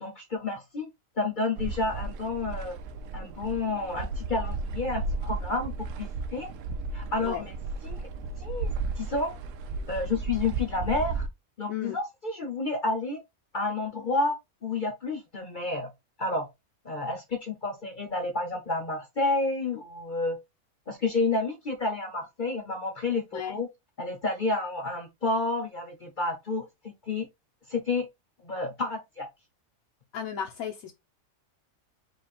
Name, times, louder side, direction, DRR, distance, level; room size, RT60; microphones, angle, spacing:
voice 1, 0.0-0.9 1.2-2.8 3.1-6.5 6.9-7.6 7.8-8.0 8.4-9.3 9.9-11.3 11.6-13.2 13.5-15.9 16.2-16.5 16.8-20.4 20.9-23.7 24.0-26.7 27.1-27.3 27.7-28.1 28.4-29.3, left 3 dB, 45° left, 0.8 m, -30 dB
sound 1, 1.6-11.3, right 3 dB, 70° right, 0.9 m, -34 dB
voice 2, 30.1-30.9, left 9 dB, 80° left, 1.1 m, -34 dB
5.0 x 2.4 x 4.2 m
omnidirectional pair, 1.5 m